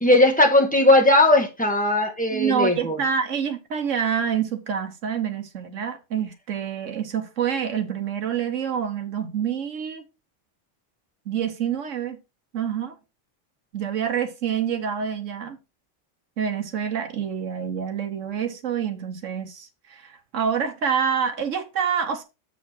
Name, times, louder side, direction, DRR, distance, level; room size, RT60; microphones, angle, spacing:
voice 1, 0.0-3.0, left 1 dB, 5° left, 1.3 m, -18 dB
voice 2, 2.3-10.1 11.3-12.2 12.5-13.0 13.7-15.6 16.4-22.2, right 7 dB, 80° right, 1.4 m, -27 dB
6.9 x 5.0 x 4.4 m
omnidirectional pair, 1.3 m